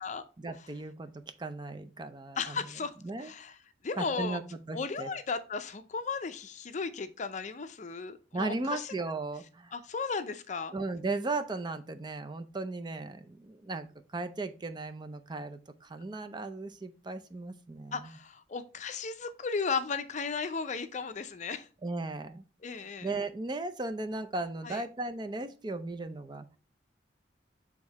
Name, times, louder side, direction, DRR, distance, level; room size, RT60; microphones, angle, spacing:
voice 1, 0.4-2.6 3.0-3.3 4.0-4.4 4.7-5.1 8.3-9.7 10.7-13.9 14.1-18.1 21.8-22.4 22.7-26.5, right 3 dB, 25° right, 9 dB, 0.5 m, -36 dB
voice 2, 2.4-2.9 3.2-3.6 3.8-4.4 4.7-8.9 9.7-10.7 17.9-21.7 22.6-23.1 24.6-24.8, left 5 dB, 40° left, 10 dB, 0.5 m, -35 dB
6.8 x 3.6 x 4.1 m, 0.36 s
head